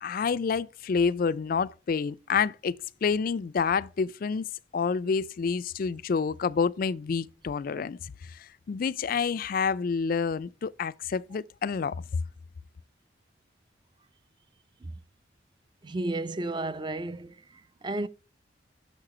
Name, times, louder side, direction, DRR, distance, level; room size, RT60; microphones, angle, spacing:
voice 1, 0.0-2.7 3.0-4.5 4.7-8.0 8.7-12.0, left 5 dB, 45° left, 0.3 m, -28 dB
voice 2, 15.8-18.1, right 2 dB, 25° right, 0.4 m, -33 dB
6.6 x 6.5 x 4.8 m
head